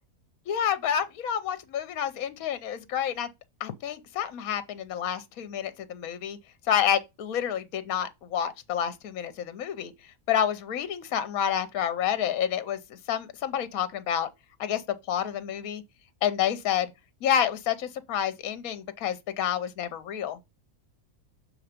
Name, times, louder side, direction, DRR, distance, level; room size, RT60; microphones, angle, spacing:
voice 1, 0.5-3.3 3.6-6.4 6.7-9.9 10.3-14.3 14.6-14.8 15.1-15.8 16.2-16.9 17.2-20.4, left 9 dB, 70° left, 1.2 m, -29 dB
7.1 x 3.3 x 5.1 m
omnidirectional pair, 1.6 m